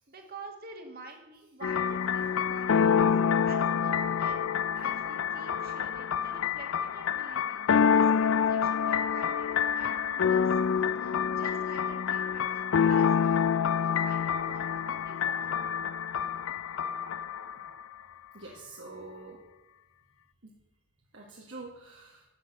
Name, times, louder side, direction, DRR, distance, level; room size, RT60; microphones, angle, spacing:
voice 1, 0.0-3.0 3.4-10.6 11.0-16.0, right 3 dB, 50° right, 3 dB, 2.1 m, -48 dB
sound 1, 1.6-17.7, left 7 dB, 85° left, 0.4 m, -27 dB
voice 2, 18.3-19.4 20.4-20.5 21.1-22.2, right 3 dB, 75° right, -2 dB, 1.9 m, -45 dB
11.5 x 6.6 x 7.9 m, 0.95 s
head